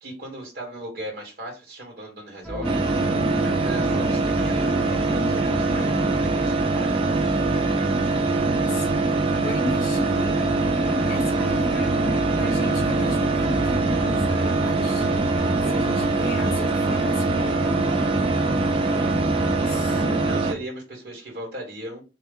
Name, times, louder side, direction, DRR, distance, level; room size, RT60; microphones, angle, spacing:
voice 1, 0.0-2.8 3.4-5.9 6.2-7.0 19.6-19.8 20.2-22.0, right 1 dB, 55° right, 1.4 m, -37 dB
sound 1, 2.4-20.3, equal, 5° left, 1.0 m, -33 dB
sound 2, 2.6-20.5, right 3 dB, 30° right, 0.5 m, -23 dB
voice 2, 8.5-10.4 11.1-15.4 15.6-17.8 19.5-20.1, left 1 dB, 85° left, 1.2 m, -35 dB
4.3 x 2.3 x 3.6 m
head